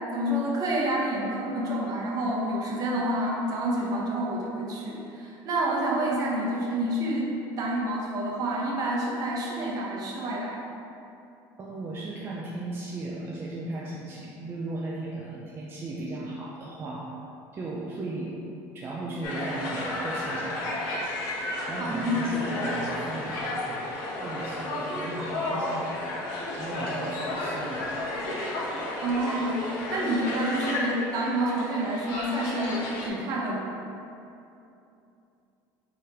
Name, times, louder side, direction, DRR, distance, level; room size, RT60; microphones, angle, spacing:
voice 1, 0.1-10.6 21.8-22.4 29.0-29.7 29.9-33.8, right 1 dB, 45° right, -3 dB, 0.9 m, -28 dB
voice 2, 11.6-17.1 17.5-18.3 18.7-20.9 21.7-23.8 24.2-26.0 26.6-28.0, right 2 dB, 25° right, -4 dB, 0.4 m, -36 dB
sound 1, 19.2-33.1, left 2 dB, 85° left, 1.0 m, -32 dB
3.6 x 3.5 x 4.3 m, 2.8 s
cardioid pair, 135°, 9 cm